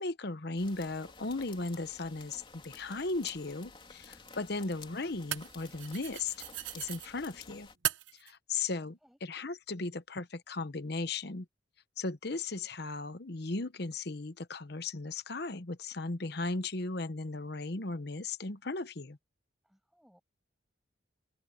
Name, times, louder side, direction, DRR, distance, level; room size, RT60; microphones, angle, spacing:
voice 1, 0.0-6.3 6.7-7.7 8.2-11.4 12.0-19.2, left 3 dB, 55° left, 1.0 m, -36 dB
sound 1, 0.6-7.8, left 4 dB, 25° left, 3.6 m, -53 dB
sound 2, 2.3-2.4 4.0-7.1 7.8-8.3, right 12 dB, 70° right, 1.0 m, -39 dB
voice 2, 8.8-9.2 19.6-20.2, equal, ahead, 6.8 m, -66 dB
head